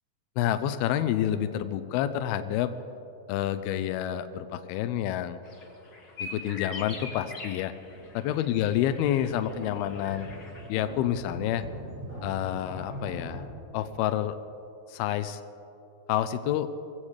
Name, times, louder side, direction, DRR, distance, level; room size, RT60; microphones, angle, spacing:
voice 1, 0.4-2.7 3.3-5.4 6.2-7.7 8.1-10.3 10.7-11.6 12.2-13.5 13.7-14.4 14.9-15.4 16.1-16.7, left 11 dB, 90° left, 10 dB, 2.2 m, -28 dB
sound 1, 5.5-10.7, left 3 dB, 50° left, 1.3 m, -42 dB
sound 2, 7.8-13.5, equal, 30° right, 2.6 m, -42 dB
23.5 x 16.0 x 3.3 m, 2.9 s
omnidirectional pair, 5.0 m